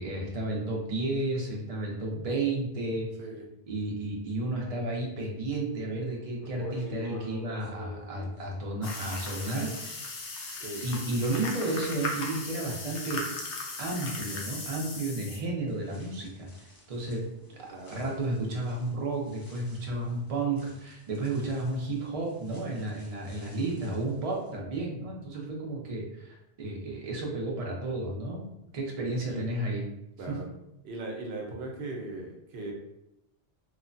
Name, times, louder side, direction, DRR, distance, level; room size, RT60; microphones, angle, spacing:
voice 1, 0.0-3.1 3.7-10.0 10.8-13.3 13.8-16.5 16.9-28.5 28.7-29.9 30.3-30.4, right 2 dB, 45° right, -2 dB, 0.6 m, -32 dB
sound 1, 5.8-5.9 6.4-9.5 9.8-24.5, left 2 dB, 30° left, 0.4 m, -51 dB
sound 2, 8.8-15.4, left 3 dB, 75° left, 0.8 m, -37 dB
voice 2, 10.5-10.8 17.7-18.0 29.3-29.4 30.2-30.5 30.8-32.7, right 2 dB, 85° right, 0 dB, 0.9 m, -38 dB
3.0 x 2.1 x 2.5 m, 0.85 s
omnidirectional pair, 1.0 m